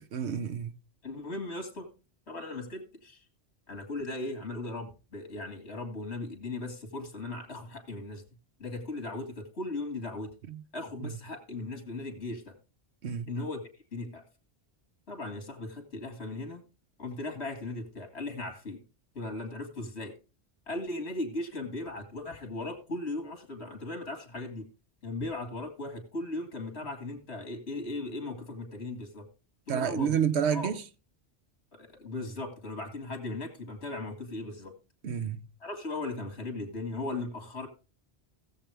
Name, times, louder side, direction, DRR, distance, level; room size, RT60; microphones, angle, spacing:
voice 1, 0.1-0.7 10.5-10.6 11.0-11.1 13.0-13.3 29.7-30.8 35.0-35.4, right 8 dB, 90° right, 1.1 m, -29 dB
voice 2, 1.0-1.9 2.3-3.2 3.7-8.2 8.6-10.3 10.7-12.5 13.3-13.6 13.9-14.2 15.1-16.6 17.0-18.8 19.1-20.1 20.7-24.6 25.0-29.3 29.7-30.2 30.5-30.7 31.7-34.7 35.6-37.7, left 2 dB, 80° left, 2.4 m, -37 dB
17.0 x 7.3 x 3.4 m
omnidirectional pair, 1.1 m